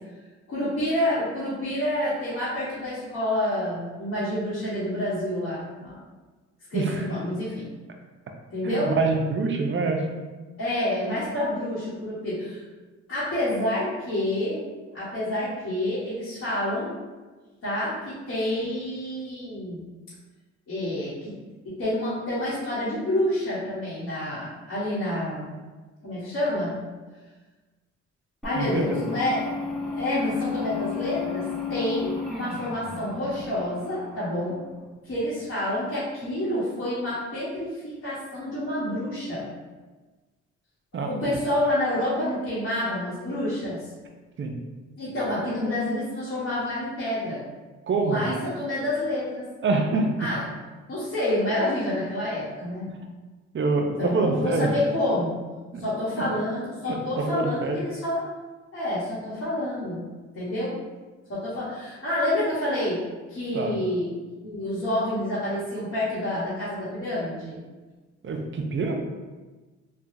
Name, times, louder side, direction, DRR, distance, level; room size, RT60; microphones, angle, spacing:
voice 1, 0.5-6.0 6.7-7.7 8.5-8.9 10.6-12.6 13.1-14.6 14.9-16.9 17.6-19.8 20.7-21.3 21.6-25.6 26.0-26.8 28.4-29.4 29.8-34.6 35.0-39.5 40.9-43.8 45.0-47.4 47.9-49.4 50.2-50.4 50.9-52.8 54.0-55.3 55.8-58.2 58.7-60.0 60.3-60.7 61.3-63.0 63.3-64.1 64.4-67.6, left 1 dB, 55° left, -12 dB, 1.2 m, -28 dB
voice 2, 6.7-7.1 8.6-10.2 28.5-29.0 40.9-41.4 44.4-44.6 47.9-48.2 49.6-50.1 52.9-53.0 53.5-54.7 55.7-55.8 56.2-56.3 56.9-57.8 63.5-63.8 68.2-68.9, right 3 dB, 45° right, 3 dB, 0.5 m, -26 dB
sound 1, 28.4-34.8, left 6 dB, ahead, 0.6 m, -33 dB
3.3 x 2.3 x 2.6 m, 1.3 s
cardioid pair, 70°, 29 cm